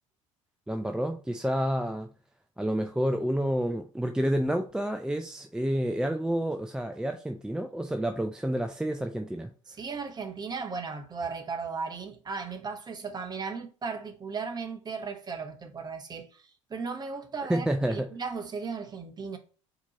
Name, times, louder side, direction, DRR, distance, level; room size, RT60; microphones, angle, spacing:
voice 1, 0.7-2.1 2.6-9.5 17.5-18.1, equal, 5° right, 0.5 m, -29 dB
voice 2, 9.7-19.4, right 5 dB, 25° right, 0.9 m, -36 dB
4.3 x 2.9 x 4.0 m
figure-of-eight pair, 65°, 16 cm